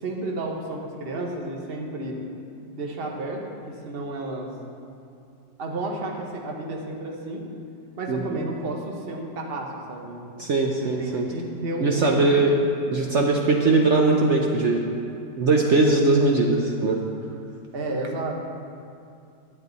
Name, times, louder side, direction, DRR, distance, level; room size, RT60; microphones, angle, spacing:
voice 1, 0.0-2.2 2.7-4.5 5.6-7.4 8.0-10.2 10.8-12.5 12.8-12.9 17.7-18.3, right 2 dB, 35° right, 0 dB, 1.1 m, -32 dB
voice 2, 10.4-11.3 11.8-12.5 12.9-14.8 15.4-17.0, right 3 dB, 70° right, 1 dB, 0.6 m, -20 dB
11.0 x 8.4 x 4.0 m, 2.5 s
omnidirectional pair, 2.0 m